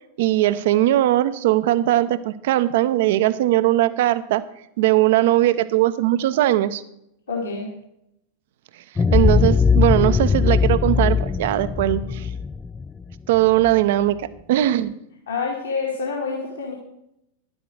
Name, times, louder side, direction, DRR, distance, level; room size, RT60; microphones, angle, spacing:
voice 1, 0.2-4.4 4.8-6.8 9.1-12.3 13.3-14.9, right 14 dB, 55° right, 15 dB, 0.7 m, -19 dB
voice 2, 7.3-7.7 15.3-16.7, left 4 dB, 70° left, -3 dB, 2.6 m, -27 dB
sound 1, 9.0-13.7, left 5 dB, 15° left, 0.3 m, -20 dB
11.5 x 11.0 x 4.7 m, 0.79 s
figure-of-eight pair, 90°, 0 cm